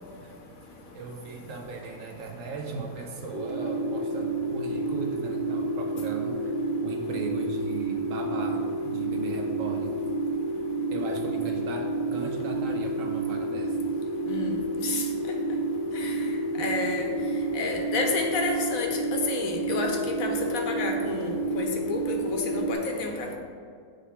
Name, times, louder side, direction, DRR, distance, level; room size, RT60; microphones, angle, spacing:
voice 1, 0.9-10.0 10.5-10.6 10.9-13.9 16.6-16.9, right 4 dB, 65° right, 2 dB, 0.9 m, -38 dB
sound 1, 3.3-22.7, right 2 dB, 80° right, 1.4 m, -29 dB
voice 2, 16.6-17.1 17.5-21.3 21.5-22.2 22.5-23.3, left 4 dB, 70° left, 2 dB, 1.1 m, -30 dB
7.5 x 3.4 x 4.3 m, 2.3 s
omnidirectional pair, 1.6 m